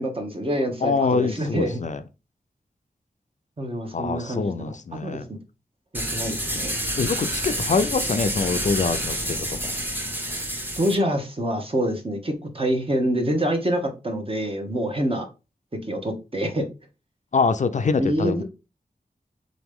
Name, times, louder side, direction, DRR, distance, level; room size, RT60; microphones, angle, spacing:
voice 1, 0.0-1.8 3.6-4.7 5.0-5.4 5.9-6.7 10.8-15.3 15.9-16.7 18.0-18.4, right 1 dB, 35° right, 1.1 m, -26 dB
voice 2, 0.8-2.0 3.9-5.3 7.0-9.7 17.3-18.4, left 4 dB, 50° left, 0.4 m, -24 dB
sound 1, 5.9-10.9, equal, 10° right, 1.1 m, -28 dB
3.9 x 3.0 x 3.6 m
wide cardioid pair, 60°, 16 cm